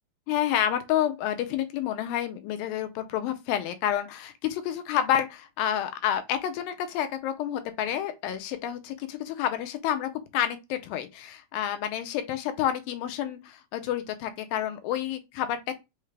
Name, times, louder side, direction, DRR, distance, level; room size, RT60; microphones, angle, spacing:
voice 1, 0.3-15.7, left 10 dB, 80° left, 2.3 m, -29 dB
5.6 x 2.3 x 3.2 m
omnidirectional pair, 4.1 m